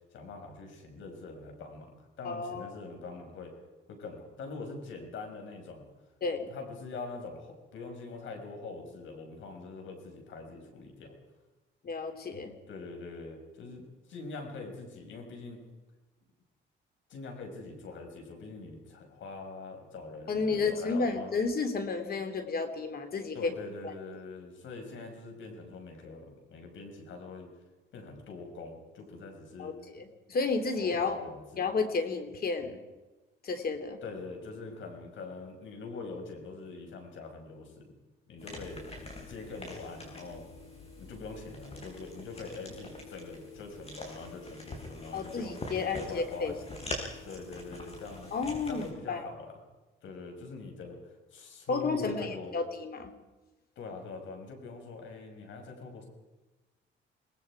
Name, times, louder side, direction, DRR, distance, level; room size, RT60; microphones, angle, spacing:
voice 1, 0.1-1.9 2.2-3.5 3.9-5.8 6.5-11.2 12.7-15.6 17.1-21.3 23.3-27.5 27.9-29.8 30.8-31.7 34.0-38.0 38.3-38.8 39.3-40.5 41.0-45.5 45.9-46.5 47.2-48.3 48.7-49.6 50.0-52.6 53.8-56.1, left 3 dB, 75° left, 3 dB, 5.8 m, -43 dB
voice 2, 2.2-2.7 6.2-6.5 11.8-12.5 20.3-23.5 23.8-23.9 29.6-31.2 31.6-32.8 33.4-34.0 45.1-46.5 47.0-47.1 48.3-49.2 51.7-53.1, left 4 dB, 50° left, 7 dB, 3.1 m, -32 dB
sound 1, 38.4-48.9, left 2 dB, 30° left, 6.2 m, -44 dB
27.5 x 20.0 x 4.9 m, 1.1 s
cardioid pair, 90°, 20 cm